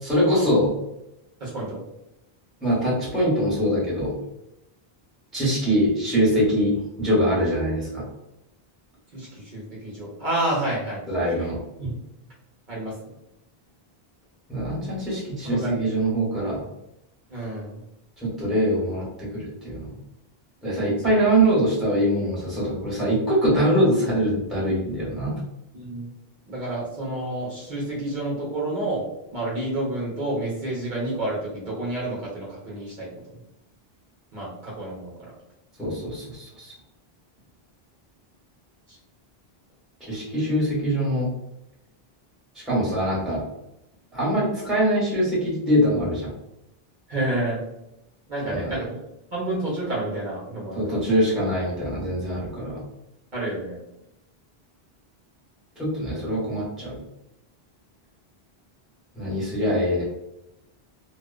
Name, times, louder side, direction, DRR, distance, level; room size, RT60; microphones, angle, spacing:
voice 1, 0.0-0.8 2.6-4.2 5.3-8.1 11.1-11.6 14.5-16.6 18.2-19.9 20.6-25.4 35.8-36.7 40.1-41.3 42.5-43.4 44.1-46.3 48.5-48.7 50.7-52.8 55.8-57.0 59.2-60.0, equal, ahead, -6 dB, 0.7 m, -23 dB
voice 2, 1.4-1.8 9.1-11.0 11.8-11.9 12.7-12.9 15.4-15.8 17.3-17.8 21.0-21.1 25.7-26.1 26.5-29.1 29.3-33.4 34.3-35.1 38.9-39.0 47.1-47.6 48.3-49.0 49.3-51.0 53.3-53.8, right 1 dB, 55° right, -5 dB, 0.8 m, -29 dB
2.4 x 2.1 x 2.4 m, 0.88 s
omnidirectional pair, 1.0 m